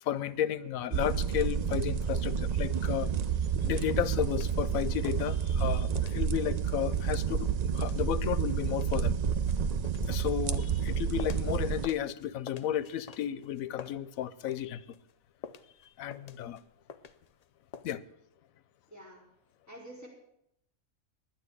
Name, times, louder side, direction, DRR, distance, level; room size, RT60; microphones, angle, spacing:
voice 1, 0.0-3.1 3.6-7.5 7.7-9.1 10.1-14.8 16.0-16.6 17.8-18.0, left 11 dB, 85° left, 17 dB, 1.1 m, -33 dB
sound 1, 0.9-11.9, right 7 dB, 90° right, 0.3 m, -30 dB
sound 2, 3.3-4.6 4.8-5.7 6.0-11.6 11.8-14.6 14.9-17.4 17.7-17.9, left 6 dB, 60° left, 0.4 m, -47 dB
voice 2, 18.9-19.2 19.7-20.1, right 1 dB, 10° right, -3 dB, 4.2 m, -47 dB
11.0 x 9.6 x 8.1 m, 0.78 s
omnidirectional pair, 1.4 m